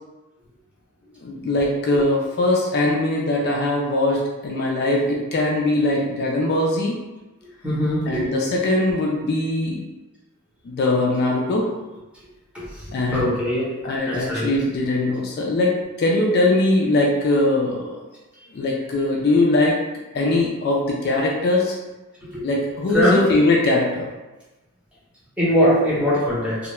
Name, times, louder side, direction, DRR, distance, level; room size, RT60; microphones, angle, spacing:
voice 1, 1.2-6.9 8.1-9.8 10.6-11.7 12.9-13.4 13.8-18.0 18.5-19.8 20.1-21.8 22.4-24.1, left 2 dB, 45° left, -2 dB, 0.3 m, -21 dB
voice 2, 7.6-8.2 13.1-13.7 14.1-14.5 22.3-22.4 22.9-23.2 25.4-26.6, equal, 5° right, -8 dB, 0.7 m, -20 dB
2.2 x 2.1 x 3.0 m, 1.1 s
head